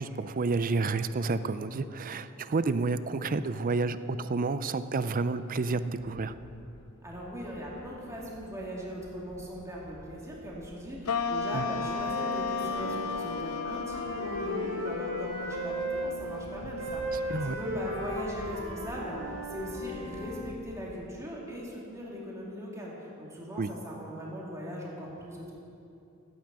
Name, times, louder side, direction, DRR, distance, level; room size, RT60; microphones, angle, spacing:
voice 1, 0.0-6.4 11.5-11.7 17.1-17.6 23.6-23.7, right 3 dB, 40° right, 13 dB, 0.5 m, -30 dB
sound 1, 6.0-21.1, left 1 dB, 55° left, 0.9 m, -51 dB
voice 2, 7.0-22.9 23.2-25.5, equal, 15° right, -5 dB, 2.6 m, -39 dB
sound 2, 11.1-17.7, left 5 dB, 85° left, 0.7 m, -35 dB
Wind instrument woodwind instrument, 11.6-16.1 16.8-20.4, right 1 dB, 85° right, 3.3 m, -37 dB
14.0 x 9.1 x 7.5 m, 2.8 s
head